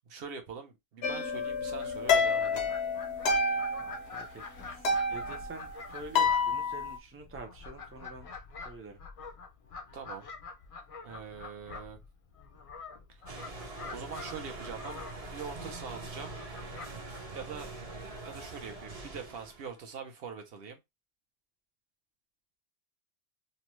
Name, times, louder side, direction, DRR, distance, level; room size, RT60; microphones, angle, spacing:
voice 1, 0.1-2.7 9.9-10.3 11.0-12.0 13.1-13.3 13.9-16.3 17.3-17.7 18.2-20.8, right 6 dB, 65° right, 0.9 m, -43 dB
sound 1, 1.0-4.3 4.6-7.0, left 4 dB, 70° left, 0.8 m, -29 dB
Fowl, 1.4-18.7, left 4 dB, 50° left, 0.4 m, -47 dB
voice 2, 3.8-8.3 8.6-9.0 17.4-17.5, right 3 dB, 20° right, 0.3 m, -47 dB
sound 2, 13.3-19.8, right 3 dB, 40° right, 0.7 m, -43 dB
2.7 x 2.1 x 3.0 m
omnidirectional pair, 1.2 m